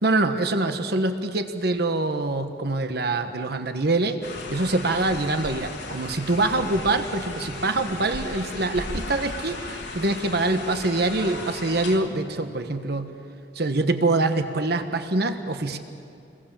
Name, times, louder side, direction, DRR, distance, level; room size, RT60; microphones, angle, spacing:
voice 1, 0.0-4.2 4.5-13.1 13.5-15.8, right 2 dB, 60° right, 7 dB, 1.3 m, -24 dB
sound 1, 4.2-12.0, left 2 dB, 70° left, 3.2 m, -36 dB
28.0 x 21.5 x 7.4 m, 2.5 s
head